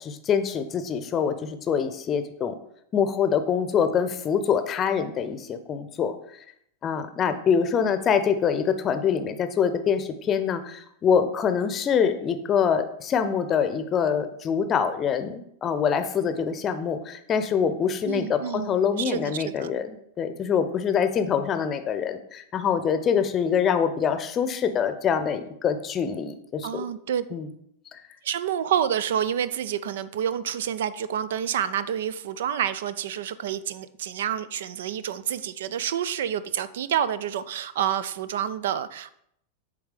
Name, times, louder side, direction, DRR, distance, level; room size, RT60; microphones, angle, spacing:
voice 1, 0.0-2.5 2.9-6.1 6.8-26.8 27.3-27.5 27.9-28.0, left 7 dB, 25° left, 10 dB, 0.7 m, -25 dB
voice 2, 18.0-19.7 26.6-27.2 28.2-39.2, right 9 dB, 60° right, 15 dB, 0.4 m, -28 dB
7.9 x 3.5 x 5.1 m, 0.72 s
figure-of-eight pair, 90°, 0 cm